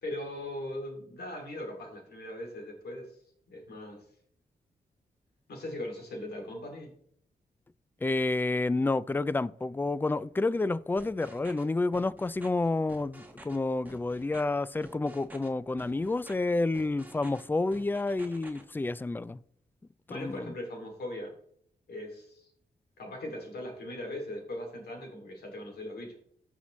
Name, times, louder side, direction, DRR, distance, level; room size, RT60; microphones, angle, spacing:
voice 1, 0.0-3.2 3.5-4.0 5.5-6.9 20.1-21.3 21.9-22.5 23.0-26.2, left 1 dB, 85° left, 2.6 m, -39 dB
voice 2, 8.0-19.4 20.1-20.5, left 2 dB, 15° left, 0.3 m, -29 dB
sound 1, 11.0-11.6 11.9-12.5 12.9-13.6 13.8-14.4 14.8-15.5 15.8-16.3 16.7-17.4 17.7-18.6, right 1 dB, 10° right, 1.5 m, -49 dB
15.5 x 5.6 x 3.1 m
cardioid pair, 85°, 16 cm